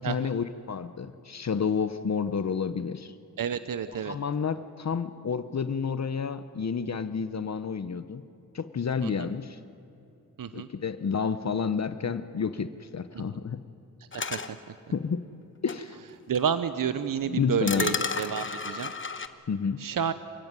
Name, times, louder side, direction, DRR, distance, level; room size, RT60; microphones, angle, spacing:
voice 1, 0.0-3.1 4.0-8.2 8.5-9.6 10.5-13.6 14.9-15.2 15.6-16.0 17.3-18.0 19.5-19.8, left 6 dB, 55° left, 12 dB, 0.8 m, -30 dB
voice 2, 3.4-4.2 9.0-9.3 10.4-10.7 13.1-13.3 14.1-14.8 16.3-18.9 19.8-20.1, right 7 dB, 80° right, 12 dB, 0.8 m, -30 dB
sound 1, 14.1-14.5 15.7-15.8 16.3-16.4 17.7-19.3, left 4 dB, 35° left, 1.1 m, -31 dB
27.0 x 16.5 x 9.6 m, 2.7 s
wide cardioid pair, 100°, 33 cm